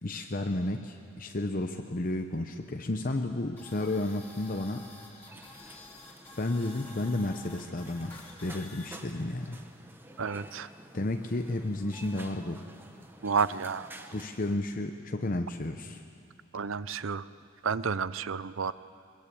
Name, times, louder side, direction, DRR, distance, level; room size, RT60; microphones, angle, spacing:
voice 1, 0.0-4.8 6.4-9.6 10.9-12.6 14.1-16.0, left 2 dB, 40° left, 5 dB, 0.8 m, -32 dB
sound 1, 3.6-8.9, left 2 dB, 10° left, 3.5 m, -50 dB
sound 2, 5.3-14.6, right 1 dB, 10° right, 0.9 m, -50 dB
voice 2, 10.2-10.7 13.2-13.9 16.5-17.2 17.6-18.7, right 5 dB, 65° right, 16 dB, 0.6 m, -30 dB
22.5 x 21.0 x 8.5 m, 2.5 s
head